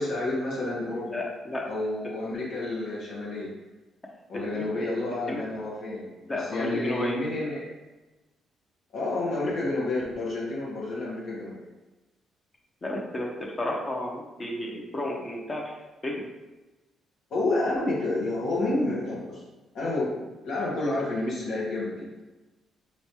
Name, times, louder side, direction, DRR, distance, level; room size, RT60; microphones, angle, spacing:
voice 1, 0.0-1.1 1.6-3.5 4.3-7.7 8.9-11.6 17.3-19.4 19.7-22.1, left 2 dB, 70° left, -6 dB, 1.3 m, -29 dB
voice 2, 1.1-1.7 4.3-4.9 5.3-5.4 6.3-7.2 12.8-16.3, left 1 dB, 30° left, -1 dB, 0.8 m, -32 dB
4.7 x 3.2 x 2.9 m, 1.1 s
cardioid pair, 90°, 0 cm